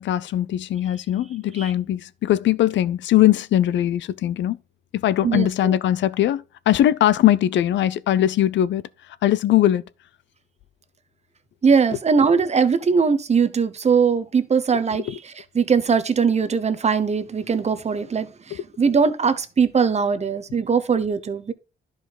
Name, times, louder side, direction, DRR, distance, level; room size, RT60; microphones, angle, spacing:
voice 1, 0.0-4.6 4.9-8.8 9.2-9.8 15.0-15.2 18.5-18.6, left 12 dB, 70° left, 0.5 m, -20 dB
voice 2, 5.2-5.7 11.6-21.5, right 5 dB, 35° right, 0.9 m, -21 dB
11.0 x 4.9 x 4.0 m
cardioid pair, 90°, 20 cm